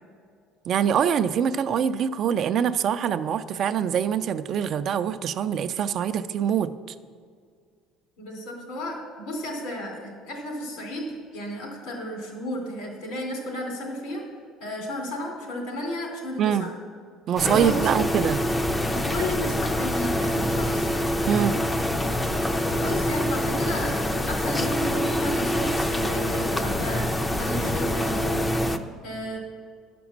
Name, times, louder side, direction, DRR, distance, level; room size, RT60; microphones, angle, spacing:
voice 1, 0.7-6.7 16.4-16.7 17.3-18.5 21.3-21.6, right 8 dB, 45° right, 11 dB, 0.4 m, -24 dB
voice 2, 8.2-14.2 14.6-16.7 17.4-17.9 18.8-20.9 22.7-27.1 27.3-28.6 29.0-29.4, equal, 80° left, 1 dB, 3.1 m, -33 dB
sound 1, 17.4-28.8, left 1 dB, 10° left, 0.5 m, -25 dB
10.5 x 6.0 x 7.3 m, 2.1 s
cardioid pair, 135°, 0 cm